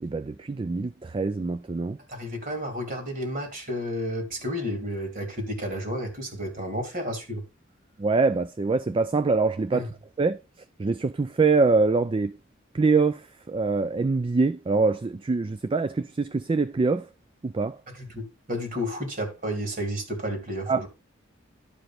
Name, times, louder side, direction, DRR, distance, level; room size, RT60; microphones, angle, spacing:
voice 1, 0.0-2.0 8.0-9.9 10.2-10.4 10.8-12.4 12.7-17.1 17.4-17.8 20.7-20.9, right 4 dB, 25° right, 0.4 m, -24 dB
voice 2, 2.1-7.4 9.7-9.9 18.0-18.2 18.5-20.9, equal, 45° right, 2.7 m, -31 dB
11.5 x 5.0 x 4.4 m
head